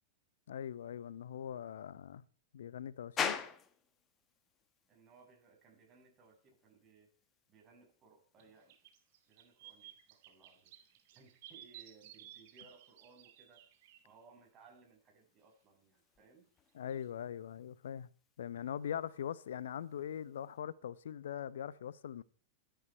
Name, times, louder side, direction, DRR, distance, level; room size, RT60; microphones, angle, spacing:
voice 1, 0.5-2.2 2.5-3.5 16.7-18.1 18.4-22.2, left 9 dB, 65° left, 0.9 m, -42 dB
sound 1, 3.2-20.6, left 7 dB, 25° left, 1.6 m, -48 dB
voice 2, 4.9-7.1 7.5-8.7 9.3-13.6 14.0-16.5, right 4 dB, 30° right, 7.2 m, -63 dB
sound 2, 8.4-8.5 8.7-14.1 16.9-17.0, right 12 dB, 50° right, 2.4 m, -56 dB
27.5 x 10.5 x 4.5 m
figure-of-eight pair, 90°, 0 cm